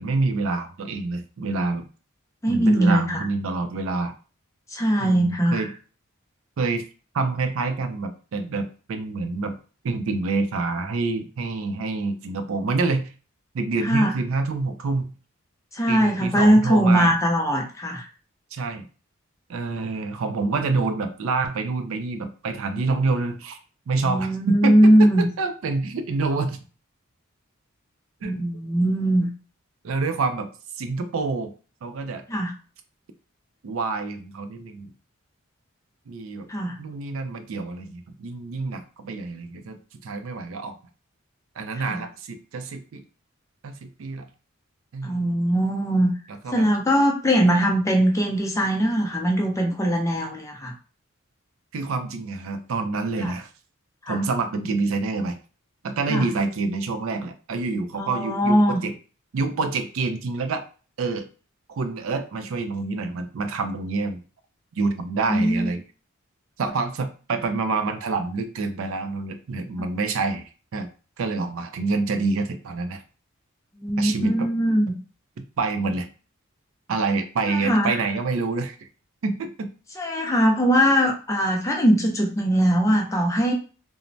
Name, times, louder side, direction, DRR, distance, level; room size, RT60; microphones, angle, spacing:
voice 1, 0.0-1.9 2.5-4.1 5.0-5.7 6.6-6.8 7.1-9.6 9.8-13.1 13.5-15.1 15.9-17.1 18.5-18.9 19.5-23.6 23.9-26.6 28.2-28.4 29.8-30.5 30.8-31.5 31.8-32.2 33.6-34.9 36.1-36.5 36.8-40.8 41.6-43.0 43.6-44.3 44.9-45.4 46.4-46.7 47.5-47.6 51.7-53.5 54.1-55.4 55.8-58.9 59.3-60.7 61.0-61.3 61.7-64.2 64.8-65.8 66.6-70.9 71.2-73.0 74.0-74.5 75.4-76.1 76.9-78.9 79.2-79.7, right 3 dB, 70° right, 8 dB, 0.4 m, -27 dB
voice 2, 2.4-3.2 4.7-5.6 13.8-14.1 15.7-18.1 24.0-25.3 28.2-29.3 32.3-32.5 36.5-36.8 41.9-42.0 45.0-46.1 46.5-50.7 53.2-53.3 54.0-54.2 56.1-56.3 58.0-58.8 65.3-65.7 73.8-74.9 77.5-78.0 80.0-83.5, equal, 15° left, 1 dB, 0.4 m, -20 dB
3.1 x 2.0 x 2.6 m, 0.37 s
head